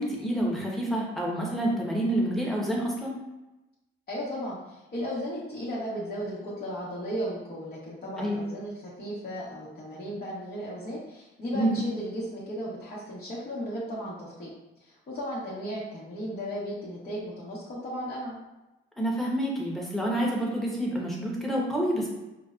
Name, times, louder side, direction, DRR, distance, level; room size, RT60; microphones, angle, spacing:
voice 1, 0.0-3.2 8.2-8.4 11.5-11.8 19.0-22.1, right 1 dB, ahead, -3 dB, 1.0 m, -28 dB
voice 2, 4.1-14.5 14.8-18.4, equal, 50° left, -9 dB, 1.1 m, -35 dB
5.1 x 2.1 x 2.4 m, 0.98 s
cardioid pair, 90°, 20 cm